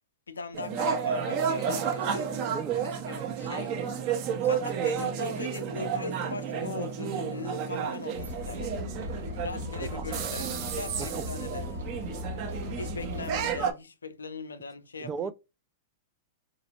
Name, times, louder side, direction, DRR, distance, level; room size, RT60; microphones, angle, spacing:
voice 1, 0.3-2.3 2.8-3.7 4.4-8.7 9.4-11.7 12.8-15.3, left 4 dB, 85° left, 0.4 m, -40 dB
sound 1, 0.5-13.7, right 7 dB, 45° right, 0.9 m, -32 dB
sound 2, 1.2-7.9, right 8 dB, 5° right, 0.7 m, -43 dB
voice 2, 2.5-2.8 9.9-10.4 11.1-11.8 15.0-15.3, right 6 dB, 25° right, 0.3 m, -38 dB
sound 3, 8.1-13.6, left 1 dB, 80° right, 1.5 m, -38 dB
4.1 x 2.5 x 2.9 m
hypercardioid pair, 105°, 0 cm